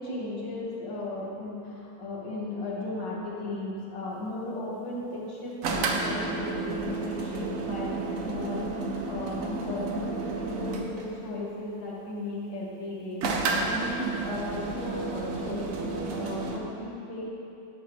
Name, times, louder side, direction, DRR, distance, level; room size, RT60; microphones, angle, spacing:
voice 1, 0.0-8.7 9.1-17.2, left 1 dB, 75° left, -6 dB, 2.3 m, -36 dB
sound 1, 5.6-11.1 13.2-16.6, right 3 dB, 60° right, 1.0 m, -31 dB
11.0 x 6.8 x 3.1 m, 2.8 s
omnidirectional pair, 2.0 m